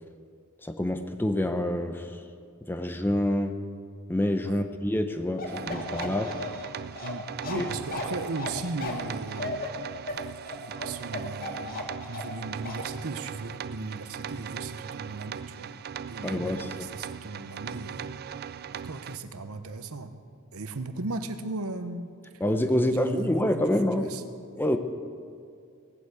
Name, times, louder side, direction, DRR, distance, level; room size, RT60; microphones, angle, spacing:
voice 1, 0.6-2.2 2.7-3.5 4.1-6.3 7.5-7.6 16.2-16.9 22.4-24.2 24.5-24.8, left 1 dB, 10° left, 7 dB, 0.6 m, -27 dB
Bark, 5.4-12.4 12.7-12.8, left 3 dB, 40° left, 2.0 m, -35 dB
sound 1, 5.5-19.2, right 7 dB, 45° right, 0.4 m, -39 dB
voice 2, 7.0-9.6 10.1-15.7 16.1-20.2 20.5-22.4 22.7-24.2, right 3 dB, 70° right, 9 dB, 0.9 m, -37 dB
18.0 x 8.2 x 8.3 m, 2.4 s
head